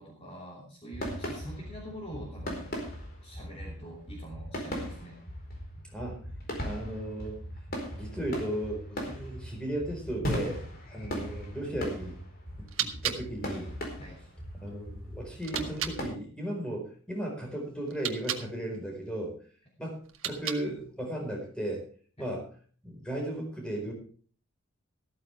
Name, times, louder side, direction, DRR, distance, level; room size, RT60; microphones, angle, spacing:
voice 1, 0.0-2.7 3.2-5.2 9.0-9.2 10.9-11.1 14.0-14.2 22.2-22.3, equal, 25° left, -2 dB, 3.0 m, -45 dB
sound 1, 0.9-16.1, equal, 40° left, 4.4 m, -38 dB
voice 2, 6.6-7.4 7.9-10.6 10.9-12.2 12.6-13.7 14.6-19.3 19.8-21.8 22.2-22.5 22.8-23.9, right 1 dB, 5° left, 0 dB, 4.6 m, -35 dB
sound 2, 12.5-16.0 17.8-18.5 20.0-20.9, right 10 dB, 65° right, 1.4 m, -37 dB
14.5 x 13.5 x 3.4 m, 0.42 s
head